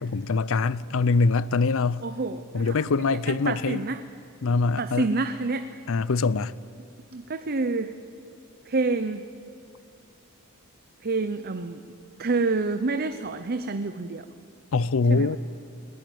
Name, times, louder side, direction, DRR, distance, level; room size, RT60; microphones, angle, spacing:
voice 1, 0.0-2.0 2.5-3.8 4.4-5.1 5.9-6.5 14.7-15.4, left 4 dB, 65° left, 0.5 m, -23 dB
voice 2, 2.0-4.0 4.8-5.7 7.1-7.9 8.7-9.3 11.0-11.8 12.2-14.3 15.1-15.3, right 3 dB, 45° right, 0.7 m, -28 dB
20.0 x 19.0 x 9.2 m
head